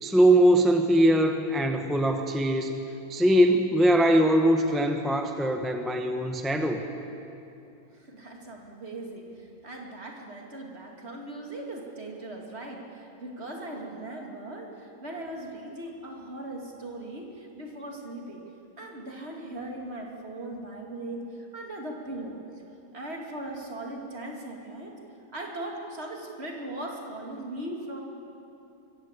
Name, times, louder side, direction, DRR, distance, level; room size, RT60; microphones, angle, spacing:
voice 1, 0.0-2.8 3.1-6.8, right 1 dB, ahead, 5 dB, 0.8 m, -22 dB
voice 2, 7.9-18.4 18.8-22.4 22.9-25.0 25.3-28.0, right 1 dB, 40° right, 0 dB, 2.7 m, -39 dB
24.0 x 15.0 x 8.2 m, 2.9 s
omnidirectional pair, 1.7 m